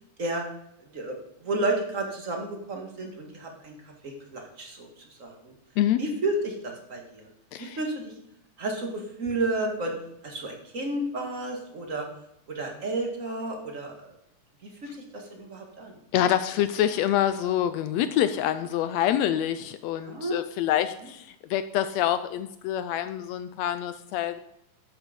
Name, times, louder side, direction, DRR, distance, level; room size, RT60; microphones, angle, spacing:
voice 1, 0.9-3.7 4.0-5.5 6.0-7.3 7.6-8.1 8.6-9.9 10.2-12.1 12.5-14.1 14.8-16.0 20.0-20.4, right 2 dB, 30° right, 2 dB, 1.7 m, -32 dB
voice 2, 16.1-24.4, left 11 dB, 85° left, 11 dB, 1.5 m, -26 dB
11.5 x 8.1 x 5.2 m, 0.79 s
omnidirectional pair, 3.6 m